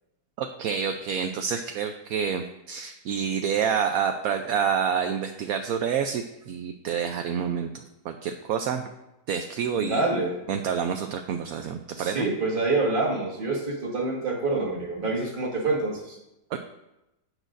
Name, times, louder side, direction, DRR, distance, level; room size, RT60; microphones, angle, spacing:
voice 1, 0.4-8.8 9.3-10.0 10.5-12.2 16.5-16.6, right 7 dB, 70° right, 6 dB, 0.9 m, -28 dB
voice 2, 9.8-10.4 12.0-16.2, right 3 dB, 30° right, -1 dB, 1.7 m, -26 dB
16.5 x 6.4 x 2.5 m, 0.93 s
omnidirectional pair, 1.8 m